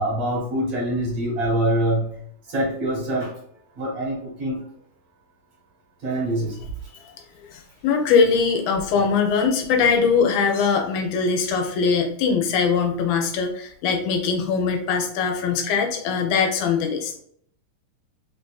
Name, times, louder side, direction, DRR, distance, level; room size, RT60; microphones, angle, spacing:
voice 1, 0.0-2.2 2.5-3.3 3.8-4.6 6.0-6.6, right 1 dB, 60° right, -4 dB, 2.2 m, -24 dB
voice 2, 7.5-17.1, left 5 dB, 75° left, 3 dB, 2.0 m, -21 dB
5.1 x 2.5 x 2.3 m, 0.64 s
omnidirectional pair, 3.7 m